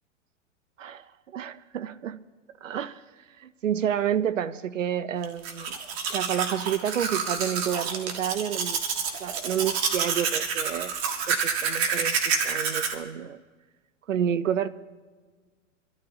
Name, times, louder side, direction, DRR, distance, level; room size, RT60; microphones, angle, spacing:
voice 1, 0.8-2.2 2.6-3.0 3.4-5.8 6.1-8.8 9.2-11.0 11.3-13.4 14.1-14.7, right 9 dB, 80° right, 15 dB, 0.7 m, -29 dB
Domestic sounds home sounds, 5.2-12.9, right 6 dB, 55° right, 1.9 m, -28 dB
25.0 x 12.5 x 2.8 m, 1.4 s
hypercardioid pair, 100°, 37 cm